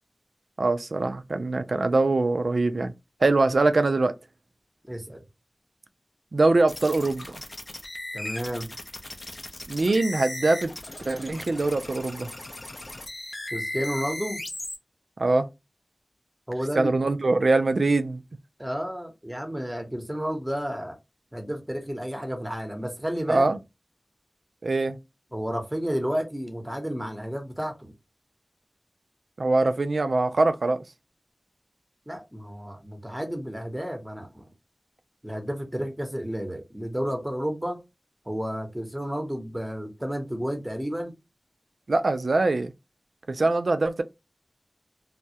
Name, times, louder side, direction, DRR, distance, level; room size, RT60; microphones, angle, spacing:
voice 1, 0.6-2.9 3.2-4.1 6.3-7.4 9.7-10.7 11.1-12.3 15.2-15.5 16.8-18.2 23.3-23.6 24.6-25.0 29.4-30.8 41.9-42.7 43.3-44.0, right 2 dB, 75° right, 0.3 m, -23 dB
voice 2, 4.8-5.2 8.1-8.7 13.5-14.4 16.5-16.9 18.6-21.0 21.3-23.5 25.3-27.9 32.1-34.5 35.2-37.8 38.3-41.1, equal, 10° right, 0.8 m, -31 dB
sound 1, 6.7-14.8, left 1 dB, 45° left, 0.5 m, -37 dB
2.2 x 2.0 x 2.7 m
wide cardioid pair, 45°, 0 cm